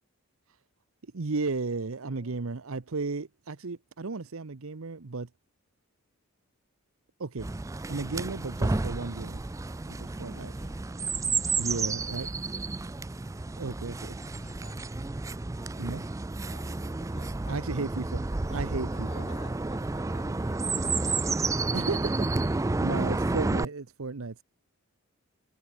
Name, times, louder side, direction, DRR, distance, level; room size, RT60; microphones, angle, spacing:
voice 1, 1.1-5.3 7.2-7.5 7.9-9.4 9.9-10.5 11.6-12.3 13.6-14.2 15.8-16.1 17.5-19.2 21.7-24.4, right 3 dB, 75° right, 0.8 m, -34 dB
voice 2, 2.0-2.4 10.2-10.9 11.4-12.7 14.4-14.9 16.5-17.7 18.5-21.9, left 3 dB, 35° left, 3.9 m, -54 dB
Chirp tweet, 7.4-23.6, right 3 dB, 15° right, 0.3 m, -31 dB
head